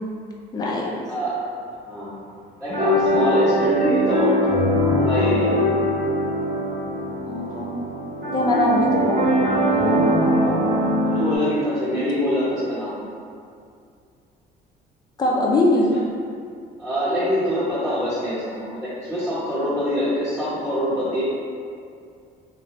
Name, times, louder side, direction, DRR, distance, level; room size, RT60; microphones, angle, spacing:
voice 1, 0.5-0.9 7.3-7.8 8.3-10.6 15.2-15.9, left 2 dB, 25° left, -2 dB, 0.4 m, -22 dB
voice 2, 1.1-1.4 1.8-2.2 2.6-4.4 5.0-5.6 11.0-12.9 15.9-16.0 16.8-21.2, equal, 5° right, -12 dB, 0.9 m, -24 dB
sound 1, 2.7-11.4, equal, 75° right, 1.0 m, -21 dB
2.6 x 2.5 x 3.1 m, 2.3 s
cardioid pair, 110°, 17 cm